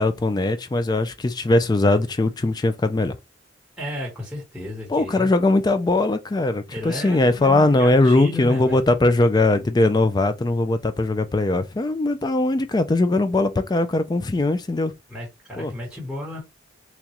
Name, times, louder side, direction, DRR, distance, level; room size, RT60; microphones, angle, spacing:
voice 1, 0.0-3.1 4.9-14.9 15.6-15.7, left 2 dB, 20° left, 0.3 m, -20 dB
voice 2, 3.8-5.3 6.7-8.8 15.1-16.4, left 1 dB, 5° right, 1.1 m, -33 dB
3.6 x 3.0 x 2.9 m
head